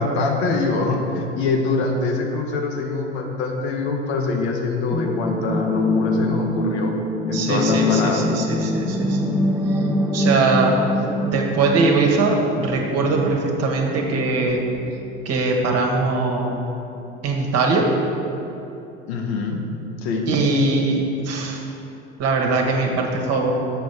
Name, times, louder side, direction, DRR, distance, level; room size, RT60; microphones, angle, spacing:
voice 1, 0.0-6.9 7.3-8.5 19.1-19.6 20.0-20.3, left 3 dB, 65° left, 2 dB, 1.2 m, -24 dB
sound 1, 4.9-14.5 14.8-14.9, left 1 dB, 5° right, 0.6 m, -24 dB
voice 2, 7.3-9.2 9.8-9.9 10.1-10.7 11.2-14.6 15.2-16.6 17.2-17.8 20.2-21.6 22.2-23.5, right 3 dB, 45° right, 0 dB, 1.5 m, -21 dB
6.9 x 5.2 x 6.3 m, 2.9 s
hypercardioid pair, 75°, 34 cm